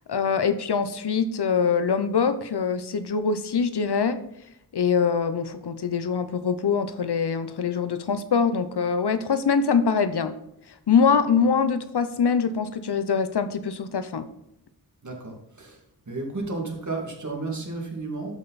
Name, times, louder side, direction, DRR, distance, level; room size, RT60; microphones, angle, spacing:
voice 1, 0.1-4.2 4.7-10.3 10.9-14.2, left 6 dB, 80° left, 11 dB, 0.8 m, -23 dB
voice 2, 15.0-15.8 16.1-18.4, right 3 dB, 45° right, 1 dB, 2.5 m, -32 dB
12.5 x 5.5 x 4.1 m, 0.77 s
wide cardioid pair, 70°, 39 cm